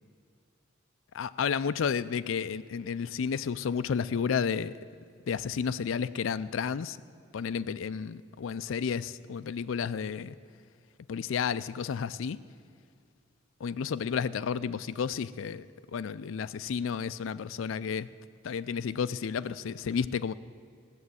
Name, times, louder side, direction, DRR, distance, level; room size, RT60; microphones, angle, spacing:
voice 1, 1.1-4.8 5.3-7.0 7.3-10.4 11.1-12.4 13.6-15.7 15.9-18.1 18.4-20.3, left 6 dB, 75° left, 14 dB, 0.4 m, -31 dB
15.0 x 7.2 x 9.5 m, 2.3 s
head